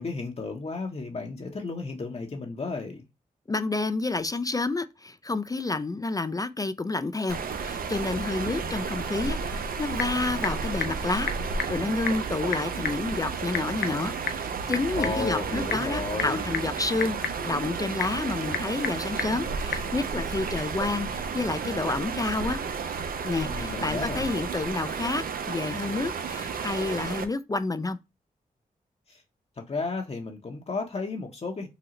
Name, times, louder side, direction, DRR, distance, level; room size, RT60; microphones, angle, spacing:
voice 1, 0.0-3.0 14.9-16.4 23.5-24.2 29.1-29.2 29.6-31.7, left 3 dB, 40° left, 0.7 m, -33 dB
voice 2, 3.5-22.6 23.2-28.0, left 3 dB, 20° left, 0.3 m, -29 dB
sound 1, 7.3-27.3, right 5 dB, 65° right, 0.5 m, -32 dB
Typing / Telephone, 9.4-19.9, left 7 dB, 80° left, 0.5 m, -36 dB
3.8 x 2.0 x 2.8 m
supercardioid pair, 45°, 16 cm